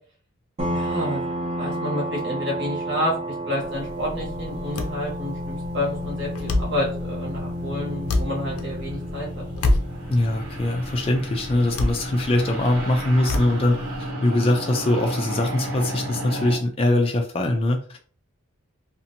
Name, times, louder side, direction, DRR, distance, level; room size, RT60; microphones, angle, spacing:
sound 1, 0.6-13.9, equal, 30° right, 0.7 m, -33 dB
voice 1, 0.7-1.3 1.5-3.1 3.5-9.4, left 1 dB, 55° right, -3 dB, 1.3 m, -29 dB
sound 2, 1.9-16.6, right 1 dB, 75° right, 1.3 m, -35 dB
sound 3, 3.6-14.1, left 2 dB, 90° left, 0.5 m, -30 dB
voice 2, 10.1-18.0, left 1 dB, 25° left, 3 dB, 0.3 m, -22 dB
2.7 x 2.5 x 2.6 m, 0.42 s
head